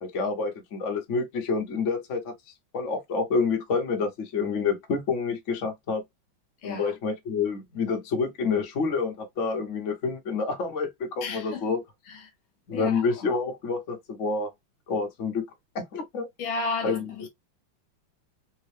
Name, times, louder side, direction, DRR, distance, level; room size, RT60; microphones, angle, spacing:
voice 1, 0.0-2.3 2.7-6.0 6.6-11.8 12.7-14.5 14.9-15.4 15.7-16.3 16.8-17.0, left 4 dB, 45° left, 1.1 m, -28 dB
voice 2, 6.6-6.9 11.2-11.7 12.1-12.3 12.7-13.0 16.4-17.3, left 4 dB, 75° left, 1.5 m, -33 dB
3.6 x 2.3 x 3.2 m
omnidirectional pair, 2.2 m